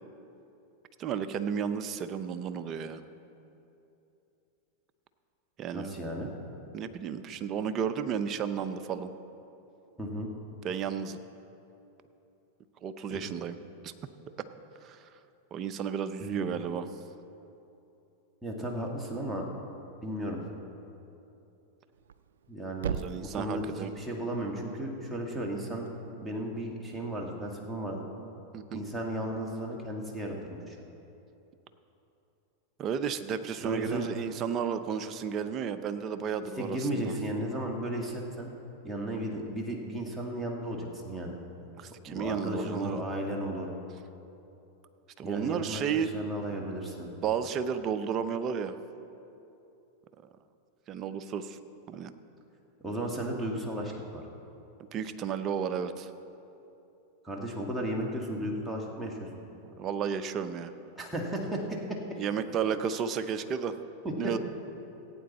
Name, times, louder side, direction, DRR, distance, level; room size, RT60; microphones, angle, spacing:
voice 1, 1.0-3.0 5.6-5.9 6.7-9.1 10.6-11.2 12.8-13.6 13.8-13.9 14.8-15.1 15.5-16.9 23.0-23.9 28.5-28.8 32.8-37.1 41.8-43.0 45.2-46.1 47.2-48.8 50.9-51.6 51.9-52.1 54.9-56.1 59.6-60.7 62.1-63.8 64.2-64.4, right 7 dB, 35° right, 9 dB, 0.7 m, -33 dB
voice 2, 5.7-6.3 10.0-10.3 13.1-13.2 16.2-16.5 18.4-19.5 20.0-20.4 22.5-25.9 26.2-28.0 28.7-30.8 33.6-34.1 36.6-38.5 38.8-41.4 42.1-43.7 45.2-45.8 46.1-47.1 52.8-54.2 57.2-59.3 61.0-61.8 64.0-64.3, right 1 dB, 5° right, -1 dB, 1.9 m, -34 dB
Thump thud, 21.9-26.0, right 8 dB, 80° right, 0.3 m, -42 dB
16.5 x 8.7 x 4.2 m, 2.9 s
hypercardioid pair, 105°, 0 cm